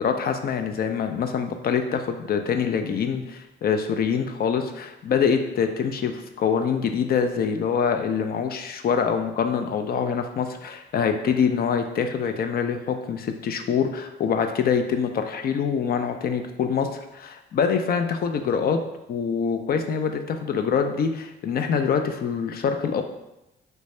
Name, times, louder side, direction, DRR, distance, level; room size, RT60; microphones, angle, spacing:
voice 1, 0.0-18.8 19.1-23.0, left 6 dB, 50° left, 6 dB, 0.4 m, -25 dB
3.2 x 2.6 x 3.2 m, 0.90 s
cardioid pair, 90°, 20 cm